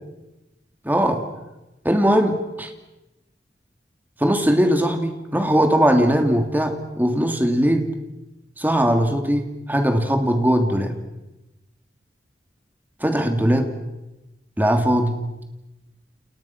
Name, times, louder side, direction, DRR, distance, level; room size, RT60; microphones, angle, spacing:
voice 1, 0.8-1.2 1.8-2.7 4.2-7.9 8.6-10.9 13.0-13.7 14.6-15.2, equal, 10° right, 5 dB, 2.9 m, -20 dB
29.5 x 29.5 x 6.1 m, 0.98 s
head